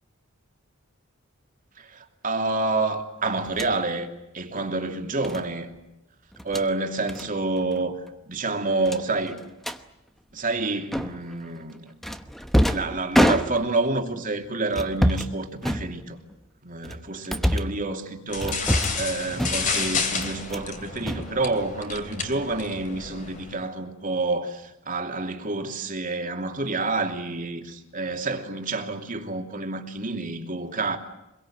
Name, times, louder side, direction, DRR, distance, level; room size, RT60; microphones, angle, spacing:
voice 1, 1.8-5.7 6.5-9.4 10.3-11.9 12.6-16.2 16.6-31.0, right 3 dB, 35° right, 2.7 m, -28 dB
sound 1, 3.5-3.8 5.2-5.4 6.3-6.7 7.1-7.3 7.6-7.8 8.1-8.2 8.8-9.8 10.9-11.4 12.0-13.9 14.7-15.3 15.6-16.3 16.8-17.8 18.4-19.1 19.4-19.8 20.2-20.7 21.0-21.9, equal, ahead, 1.0 m, -26 dB
sound 2, 18.3-23.6, left 4 dB, 35° left, 3.0 m, -31 dB
25.5 x 22.5 x 8.9 m
head